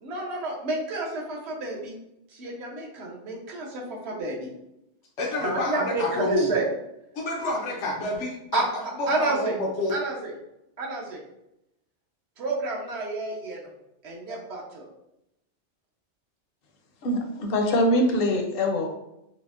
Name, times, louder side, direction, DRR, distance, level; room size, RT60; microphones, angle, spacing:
voice 1, 0.0-1.9 2.3-4.5 5.4-6.7 8.5-8.6 9.1-9.6 9.9-10.3 10.8-11.2 12.4-13.6 14.0-14.9, right 2 dB, 70° right, -1 dB, 1.0 m, -30 dB
voice 2, 5.2-6.5 7.1-8.6 9.2-9.9, left 2 dB, 90° left, -2 dB, 1.0 m, -28 dB
voice 3, 17.0-18.9, left 1 dB, 60° left, 3 dB, 0.7 m, -23 dB
5.0 x 2.1 x 2.4 m, 0.85 s
omnidirectional pair, 1.2 m